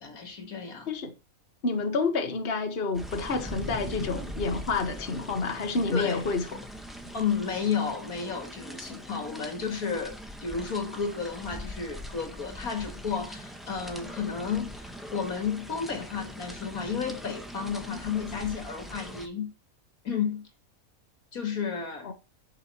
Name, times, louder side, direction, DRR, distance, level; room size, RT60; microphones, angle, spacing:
voice 1, 0.0-0.9 5.9-6.2 7.1-19.5 20.0-20.4 21.3-22.1, left 6 dB, 80° left, 2.6 m, -32 dB
voice 2, 1.6-6.5 22.0-22.1, left 3 dB, 45° left, 1.6 m, -29 dB
sound 1, 2.9-19.3, equal, ahead, 1.5 m, -41 dB
11.0 x 6.7 x 4.5 m
omnidirectional pair, 1.5 m